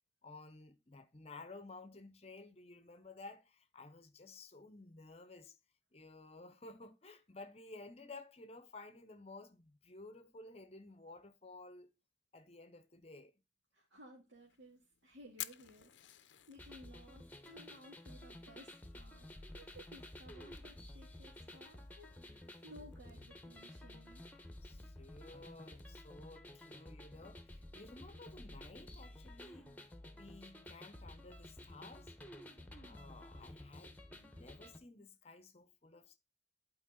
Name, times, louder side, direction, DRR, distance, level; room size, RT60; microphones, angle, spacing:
voice 1, 0.2-5.6 5.9-11.9 12.3-13.3 24.6-29.7 30.1-32.1 32.7-36.2, left 3 dB, 30° left, 0.7 m, -54 dB
voice 2, 13.7-24.2, equal, 75° right, 2.3 m, -58 dB
Fire, 14.3-25.9, left 14 dB, 75° left, 0.6 m, -56 dB
sound 1, 16.6-34.8, left 1 dB, 10° left, 1.0 m, -53 dB
11.0 x 4.7 x 3.8 m
head